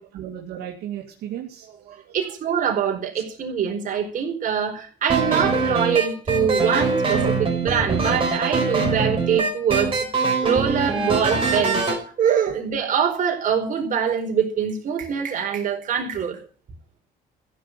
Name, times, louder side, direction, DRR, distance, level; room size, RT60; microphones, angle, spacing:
voice 1, 0.0-2.3 12.5-12.6, right 10 dB, 75° right, 0 dB, 2.6 m, -36 dB
voice 2, 2.1-10.1 10.4-16.4, right 7 dB, 50° right, 3 dB, 4.6 m, -24 dB
sound 1, 5.1-12.0, right 4 dB, 30° right, 4.9 m, -23 dB
15.0 x 6.8 x 9.3 m, 0.42 s
cardioid pair, 110°, 17 cm